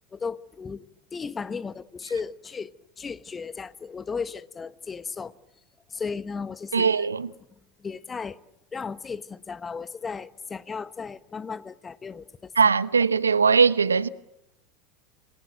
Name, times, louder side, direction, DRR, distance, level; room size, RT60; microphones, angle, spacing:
voice 1, 0.1-0.8 1.1-2.7 3.0-5.3 5.9-7.0 7.8-8.4 8.7-12.5, left 5 dB, 20° left, 1.2 m, -35 dB
voice 2, 6.7-7.3 12.6-14.1, right 5 dB, 85° right, 0.9 m, -20 dB
27.5 x 20.5 x 9.3 m
figure-of-eight pair, 80°, 0 cm